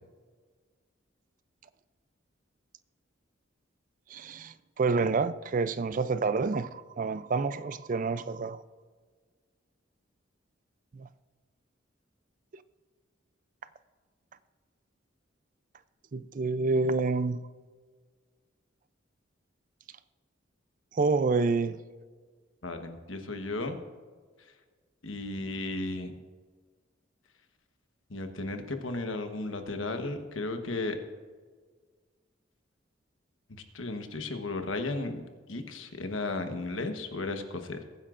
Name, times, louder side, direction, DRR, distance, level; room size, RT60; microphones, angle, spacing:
voice 1, 4.1-8.6 10.9-11.1 12.5-12.6 16.1-17.4 20.9-21.8, right 4 dB, 40° right, 0.4 m, -28 dB
voice 2, 22.6-23.8 25.0-26.2 28.1-31.0 33.5-37.8, left 2 dB, 85° left, 1.2 m, -35 dB
21.5 x 9.9 x 2.5 m
head